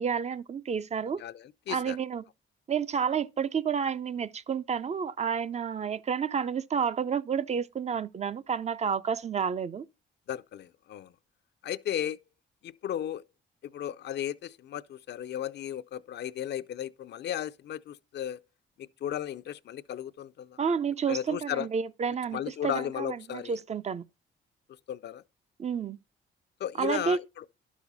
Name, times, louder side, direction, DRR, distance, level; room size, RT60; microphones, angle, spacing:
voice 1, 0.0-1.2 1.7-2.3 2.7-9.9 20.6-24.0 25.6-26.0 26.8-27.2, right 6 dB, 35° right, 0.5 m, -30 dB
voice 2, 1.2-2.0 10.3-11.1 11.6-12.2 12.6-13.2 13.6-18.4 18.8-20.6 21.1-21.7 22.3-23.6 24.9-25.2 26.6-27.4, left 10 dB, 60° left, 0.5 m, -35 dB
11.5 x 6.1 x 4.0 m
cardioid pair, 90°, 20 cm